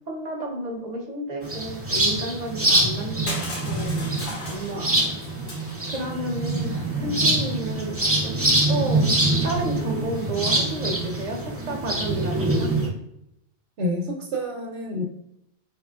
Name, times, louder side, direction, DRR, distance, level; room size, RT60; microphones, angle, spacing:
voice 1, 0.1-3.9 4.4-4.9 5.9-6.7 7.0-8.0 8.2-8.3 8.7-9.0 9.4-12.7, right 1 dB, 40° right, 0 dB, 0.9 m, -31 dB
sound 1, 1.4-12.9, right 2 dB, 15° right, 0.6 m, -24 dB
Crushing, 3.3-6.2, left 1 dB, 70° left, 1.4 m, -36 dB
voice 2, 13.8-15.0, left 1 dB, 75° right, -3 dB, 1.0 m, -28 dB
4.8 x 3.1 x 2.4 m, 0.81 s
omnidirectional pair, 1.2 m